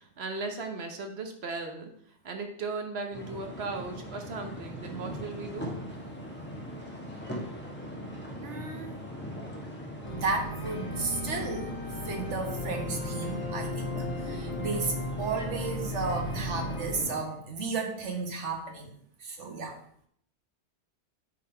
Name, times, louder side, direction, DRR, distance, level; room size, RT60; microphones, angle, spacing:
voice 1, 0.0-1.9 2.2-5.7, right 3 dB, 65° right, 5 dB, 1.1 m, -37 dB
sound 1, 3.1-17.2, equal, 10° left, 1.2 m, -40 dB
voice 2, 8.4-8.9 10.1-11.8 12.0-18.9 19.2-19.8, right 4 dB, 90° right, 3 dB, 1.5 m, -33 dB
sound 2, 10.0-17.0, left 1 dB, 35° left, 1.6 m, -36 dB
7.4 x 3.9 x 4.4 m, 0.66 s
omnidirectional pair, 1.2 m